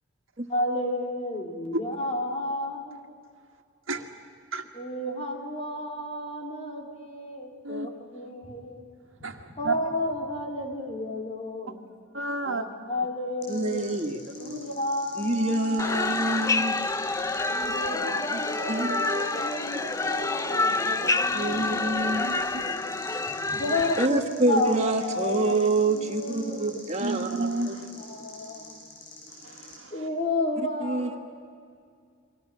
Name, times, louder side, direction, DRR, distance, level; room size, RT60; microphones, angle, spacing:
voice 1, 0.5-3.1 4.7-8.9 9.3-11.8 12.4-13.9 14.4-16.5 17.5-22.8 23.3-24.2 24.5-25.5 25.8-26.6 28.0-28.8 29.9-31.2, left 1 dB, 35° left, 0 dB, 3.6 m, -32 dB
voice 2, 9.2-9.7 12.1-12.7 14.3-14.7 17.1-17.6 17.9-18.1 22.0-22.7 23.5-23.8 27.0-27.9 29.4-30.0, right 2 dB, 85° right, 4 dB, 1.8 m, -33 dB
sound 1, 13.4-29.8, left 3 dB, 65° left, 7.2 m, -47 dB
voice 3, 13.5-14.2 14.5-14.6 15.2-16.7 18.7-19.0 21.3-22.3 24.0-27.3 30.8-31.2, right 2 dB, 35° right, 4 dB, 1.6 m, -26 dB
sound 2, 15.8-24.1, left 3 dB, 15° left, 0.5 m, -28 dB
30.0 x 23.5 x 6.4 m, 2.2 s
head